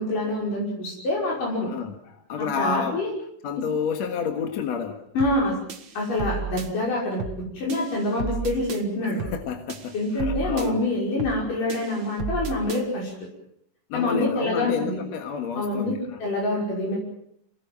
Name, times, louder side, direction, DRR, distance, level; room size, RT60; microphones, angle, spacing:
voice 1, 0.0-1.7 2.4-3.1 5.2-5.5 6.0-9.2 9.9-13.1 13.9-15.0 15.5-17.0, left 1 dB, 85° left, -3 dB, 7.3 m, -26 dB
voice 2, 1.6-3.0 3.4-5.0 9.0-10.8 13.9-16.2, left 6 dB, 60° left, 5 dB, 2.7 m, -30 dB
sound 1, 5.2-5.4 5.7-6.7 7.2-7.4 7.7-8.8 9.2-9.4 9.7-10.7 11.2-11.4 11.7-12.8, right 5 dB, 45° right, 2.0 m, -33 dB
27.5 x 19.0 x 7.6 m, 0.71 s
omnidirectional pair, 3.6 m